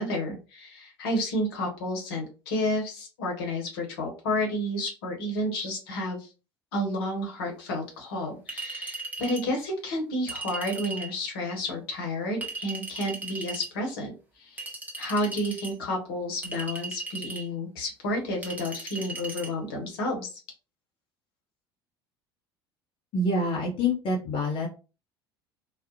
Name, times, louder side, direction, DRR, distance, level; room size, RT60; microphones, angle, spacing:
voice 1, 0.0-6.3 6.7-14.7 15.0-20.4, left 1 dB, 60° left, 1 dB, 0.9 m, -31 dB
Chink clink, 8.5-9.5 10.3-11.1 12.4-13.7 14.6-15.7 16.4-17.5 18.4-19.5, right 3 dB, 10° right, 0.9 m, -37 dB
voice 2, 23.1-24.7, left 2 dB, 40° left, -1 dB, 0.6 m, -26 dB
2.4 x 2.0 x 2.5 m, 0.32 s
figure-of-eight pair, 65°, 13 cm